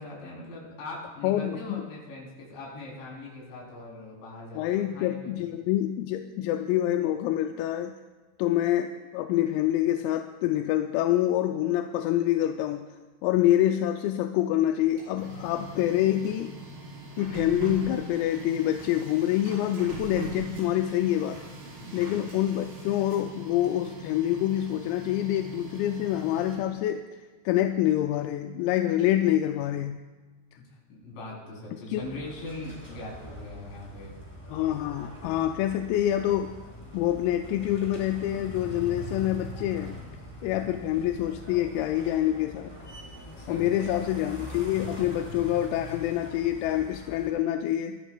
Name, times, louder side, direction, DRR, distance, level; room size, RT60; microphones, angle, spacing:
voice 1, 0.0-5.4 21.8-22.1 30.9-34.1 43.4-44.1, left 2 dB, 60° left, -3 dB, 5.7 m, -41 dB
voice 2, 1.2-1.8 4.6-7.9 8.4-12.8 13.2-16.5 17.2-21.4 21.9-27.0 27.5-30.0 31.9-32.0 34.5-36.5 36.9-40.0 40.4-42.8 43.5-48.0, left 12 dB, 90° left, 6 dB, 3.3 m, -26 dB
Printer, 14.8-26.9, right 3 dB, 65° right, 7.1 m, -41 dB
sound 1, 32.0-47.3, equal, 10° left, 2.1 m, -43 dB
24.5 x 13.5 x 2.3 m, 1.3 s
omnidirectional pair, 6.0 m